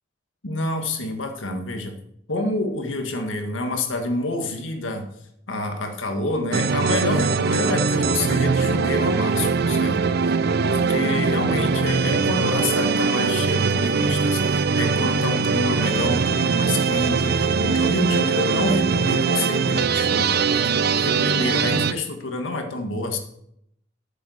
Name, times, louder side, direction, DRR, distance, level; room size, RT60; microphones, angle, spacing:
voice 1, 0.4-1.9 2.3-5.1 5.5-20.6 20.9-23.2, left 2 dB, 85° left, 5 dB, 1.8 m, -28 dB
sound 1, 6.5-21.9, right 5 dB, 55° right, 0.5 m, -21 dB
9.8 x 7.0 x 6.8 m, 0.74 s
head